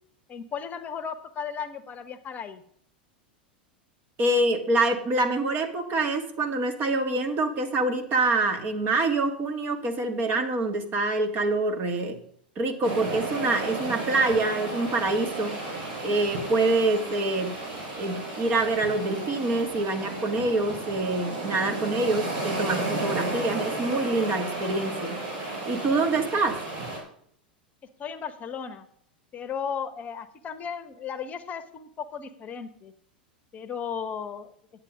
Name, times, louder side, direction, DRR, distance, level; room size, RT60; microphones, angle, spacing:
voice 1, 0.3-2.6 28.0-28.8 29.3-32.9 33.5-34.5, left 7 dB, 30° left, 12 dB, 1.0 m, -35 dB
voice 2, 4.2-12.2 12.6-15.5 16.0-17.6 18.0-25.2 25.7-26.6, right 2 dB, 35° right, 6 dB, 1.8 m, -26 dB
sound 1, 12.8-27.0, right 2 dB, 55° right, 4.6 m, -33 dB
10.0 x 8.1 x 5.1 m, 0.65 s
hypercardioid pair, 95°, 5 cm